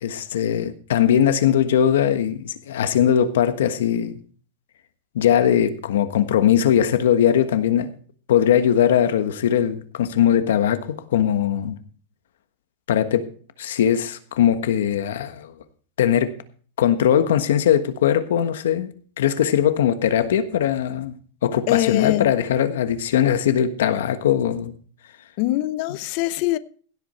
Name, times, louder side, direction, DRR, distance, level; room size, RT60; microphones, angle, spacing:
voice 1, 0.0-4.2 5.1-7.9 8.3-11.8 12.9-13.2 13.6-15.5 16.0-16.3 16.8-18.9 19.2-21.1 21.4-24.7, left 9 dB, 90° left, 1.4 m, -20 dB
voice 2, 21.7-22.3 25.4-26.6, left 16 dB, 40° left, 0.6 m, -23 dB
16.5 x 8.1 x 4.4 m
supercardioid pair, 170°, 0 cm